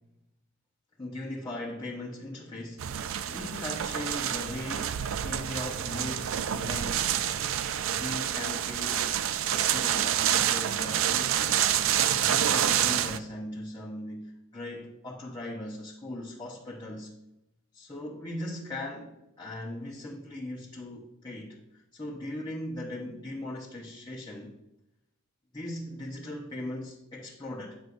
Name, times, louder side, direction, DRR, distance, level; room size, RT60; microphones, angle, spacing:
voice 1, 1.0-3.0 3.3-7.1 7.9-9.1 9.5-11.9 12.1-17.2 17.7-24.6 25.5-27.8, left 1 dB, 20° left, 0.9 m, -39 dB
sound 1, 2.8-13.2, right 10 dB, 65° right, 0.4 m, -28 dB
9.4 x 6.4 x 2.6 m
head